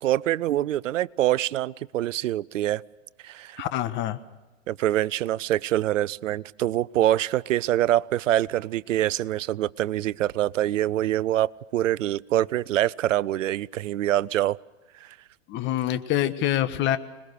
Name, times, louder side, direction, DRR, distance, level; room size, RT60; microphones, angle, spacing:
voice 1, 0.0-2.8 3.2-3.6 4.7-14.6 15.0-15.1, right 13 dB, 75° right, 23 dB, 0.7 m, -25 dB
voice 2, 3.6-4.2 15.5-17.0, left 12 dB, 30° left, 11 dB, 1.4 m, -25 dB
26.0 x 21.0 x 6.8 m, 1.1 s
hypercardioid pair, 130°, 39 cm